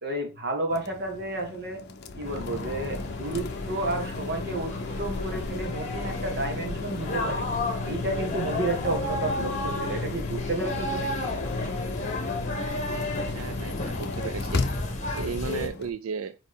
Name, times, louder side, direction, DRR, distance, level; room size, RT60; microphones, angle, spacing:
voice 1, 0.0-1.8 2.2-7.5 7.8-11.1, right 2 dB, 50° right, 1.6 m, -31 dB
sound 1, 0.7-15.9, left 3 dB, 50° left, 0.6 m, -35 dB
sound 2, 2.2-15.7, left 2 dB, 35° left, 1.4 m, -33 dB
voice 2, 13.3-14.6 15.1-16.4, right 5 dB, 90° right, 0.4 m, -34 dB
5.8 x 4.9 x 3.7 m
head